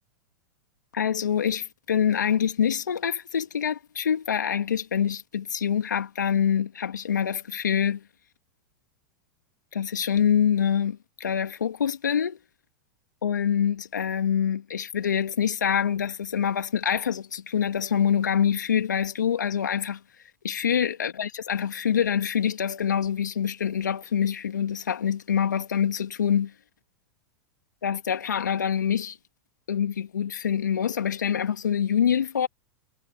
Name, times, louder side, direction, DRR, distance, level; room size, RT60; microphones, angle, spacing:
voice 1, 0.9-8.0 9.7-12.4 13.2-20.0 20.4-26.5 27.8-29.2 29.7-32.5, left 8 dB, 85° left, 2.3 m, -25 dB
hypercardioid pair, 105°, 9 cm